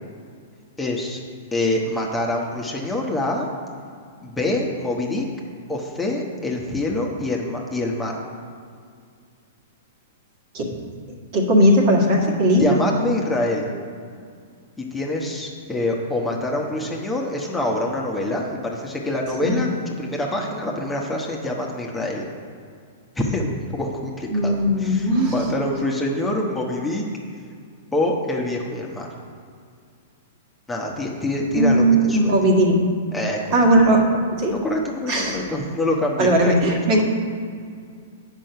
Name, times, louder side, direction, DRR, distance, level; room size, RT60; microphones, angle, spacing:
voice 1, 0.8-1.2 1.5-3.5 4.2-5.3 5.7-8.2 12.6-13.6 14.8-22.3 23.2-27.0 27.9-29.1 30.7-32.3 33.1-33.6 33.9-34.0 34.5-36.8, left 1 dB, 10° left, -1 dB, 1.1 m, -25 dB
voice 2, 11.3-12.8 19.4-19.6 24.3-25.3 31.5-32.8 33.5-34.0 34.4-34.6 35.1-35.5 36.2-37.0, right 1 dB, 45° right, 1 dB, 1.6 m, -18 dB
8.9 x 5.5 x 5.7 m, 2.2 s
figure-of-eight pair, 110°, 0 cm